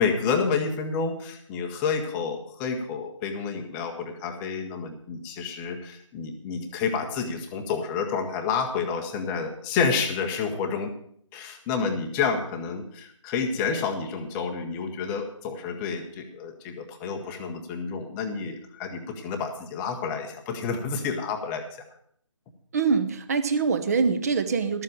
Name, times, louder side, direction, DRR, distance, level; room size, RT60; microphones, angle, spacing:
voice 1, 0.0-10.9 11.3-21.6, left 5 dB, 10° left, 5 dB, 0.8 m, -29 dB
voice 2, 22.7-24.8, right 5 dB, 30° right, 9 dB, 0.9 m, -24 dB
12.5 x 7.5 x 7.2 m, 0.64 s
figure-of-eight pair, 150°, 16 cm